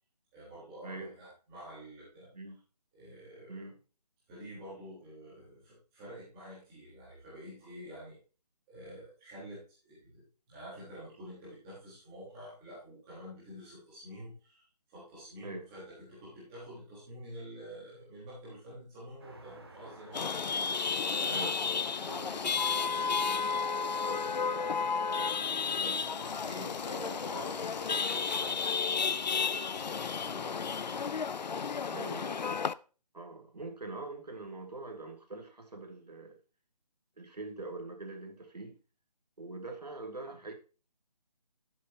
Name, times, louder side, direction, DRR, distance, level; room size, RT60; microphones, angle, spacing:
voice 1, 0.3-2.3 2.9-3.7 4.3-8.1 8.7-10.2 10.5-14.6 14.9-20.5 21.0-21.5 21.8-26.0 26.4-31.0, equal, 5° right, 1.3 m, -48 dB
sound 1, 19.2-28.6, right 2 dB, 35° right, 1.5 m, -52 dB
Chatter / Vehicle horn car horn honking / Traffic noise roadway noise, 20.1-32.7, left 5 dB, 90° left, 0.5 m, -32 dB
voice 2, 21.3-21.7 31.9-32.6 33.1-36.4 37.2-38.8 39.4-40.5, right 2 dB, 70° right, 2.6 m, -43 dB
11.0 x 7.6 x 2.8 m
hypercardioid pair, 180°, 21 cm